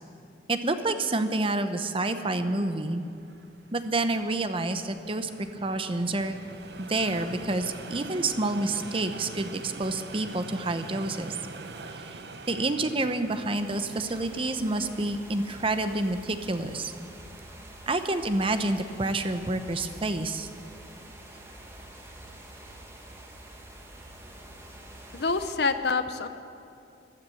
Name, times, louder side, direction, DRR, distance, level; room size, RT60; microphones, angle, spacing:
voice 1, 0.5-3.0 3.7-5.3 5.6-6.4 6.8-11.4 12.5-16.9 17.9-20.5, right 2 dB, 30° right, 9 dB, 0.8 m, -28 dB
sound 1, 2.7-20.8, right 3 dB, 65° right, 0.9 m, -45 dB
sound 2, 12.9-25.5, right 1 dB, 15° right, 1.7 m, -47 dB
voice 2, 25.1-26.3, left 4 dB, 65° left, 10 dB, 0.8 m, -26 dB
14.0 x 13.0 x 7.8 m, 2.6 s
head